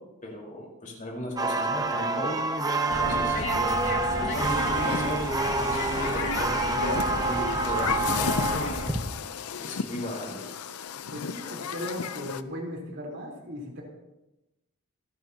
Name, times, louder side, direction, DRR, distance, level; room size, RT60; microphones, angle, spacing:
voice 1, 0.2-2.4 2.8-3.4 4.2-5.3 5.5-8.7 9.6-10.5, left 1 dB, 35° left, -2 dB, 4.5 m, -36 dB
sound 1, 1.4-9.2, right 3 dB, 15° right, 0.7 m, -28 dB
sound 2, 2.9-8.9, left 1 dB, 55° left, 2.4 m, -33 dB
voice 2, 3.0-3.5 11.1-13.8, left 1 dB, 50° right, -2 dB, 4.0 m, -37 dB
Human group actions, 4.7-12.4, left 6 dB, 90° left, 0.6 m, -34 dB
27.0 x 12.0 x 2.9 m, 0.96 s
head